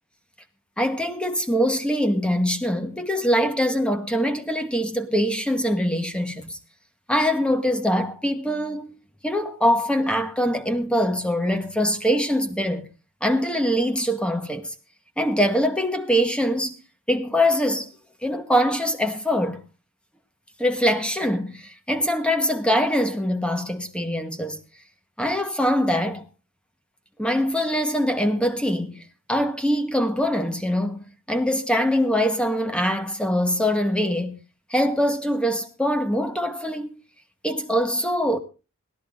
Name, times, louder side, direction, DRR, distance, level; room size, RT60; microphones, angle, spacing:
voice 1, 0.8-6.6 7.1-9.0 9.2-12.9 13.2-14.7 15.2-16.7 17.1-17.9 18.2-19.6 20.6-24.6 25.2-26.2 27.2-34.4 34.7-37.0 37.4-38.4, equal, 5° left, 1.2 m, -23 dB
17.5 x 13.0 x 3.8 m
head